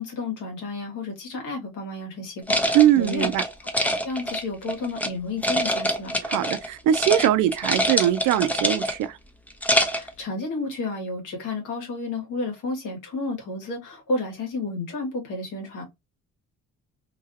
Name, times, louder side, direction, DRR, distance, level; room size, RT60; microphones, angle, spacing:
voice 1, 0.0-3.3 3.7-6.2 9.8-15.8, left 3 dB, 85° left, 1.6 m, -31 dB
sound 1, 2.5-5.1 5.4-6.7 6.9-7.3 7.5-9.1 9.5-10.1, equal, 5° left, 0.6 m, -25 dB
voice 2, 2.7-3.4 6.2-9.2, right 12 dB, 85° right, 0.5 m, -21 dB
3.0 x 2.5 x 2.7 m
cardioid pair, 90°, 30 cm